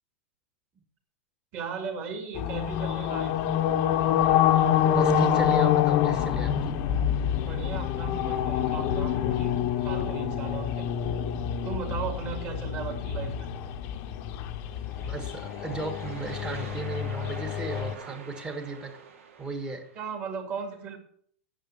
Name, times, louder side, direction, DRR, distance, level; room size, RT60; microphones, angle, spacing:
voice 1, 1.5-3.4 7.4-10.9 11.6-13.5 20.0-21.0, right 5 dB, 30° right, 4 dB, 2.3 m, -37 dB
sound 1, 2.3-17.9, left 9 dB, 35° left, 0.9 m, -26 dB
voice 2, 4.9-6.7 15.0-18.9 19.4-19.8, right 3 dB, 10° right, 6 dB, 1.4 m, -36 dB
sound 2, 14.6-20.1, right 6 dB, 75° right, 2.8 m, -46 dB
9.0 x 7.0 x 8.1 m, 0.64 s
supercardioid pair, 160°, 7 cm